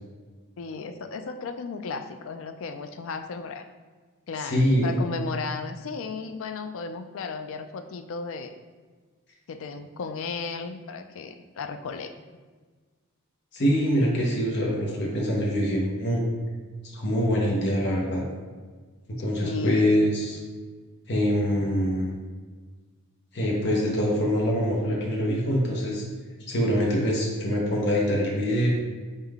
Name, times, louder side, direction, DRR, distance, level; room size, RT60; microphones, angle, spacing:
voice 1, 0.6-3.6 4.3-8.5 9.5-12.1 19.4-19.9, left 4 dB, 65° left, 8 dB, 0.4 m, -35 dB
voice 2, 4.4-5.0 13.5-16.2 16.9-18.2 19.2-20.4 21.1-22.1 23.3-26.0 26.5-28.7, equal, 50° left, -2 dB, 0.8 m, -24 dB
4.0 x 3.7 x 3.5 m, 1.4 s
head